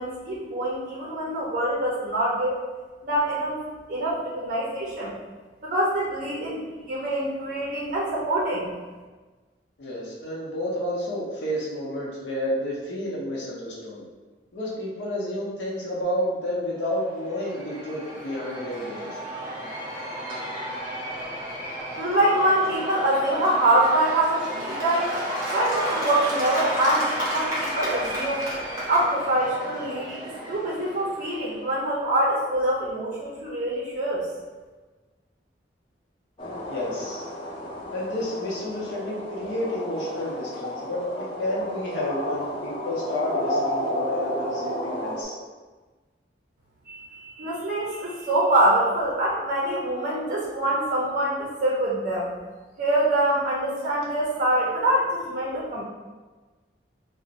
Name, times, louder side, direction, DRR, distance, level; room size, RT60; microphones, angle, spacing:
voice 1, 0.0-2.6 3.0-3.6 3.9-5.1 5.6-8.7 22.0-25.2 25.5-28.5 28.9-34.3 46.9-52.3 52.8-55.8, right 1 dB, 50° right, -4 dB, 0.5 m, -25 dB
voice 2, 9.8-14.0 14.5-19.2 36.7-37.3 37.9-45.4, left 1 dB, 75° left, -5 dB, 0.7 m, -30 dB
Cheering / Applause / Crowd, 16.9-31.7, right 1 dB, 15° right, 0.8 m, -32 dB
sound 1, 36.4-45.2, left 1 dB, 30° left, 0.5 m, -32 dB
2.5 x 2.0 x 3.9 m, 1.3 s
head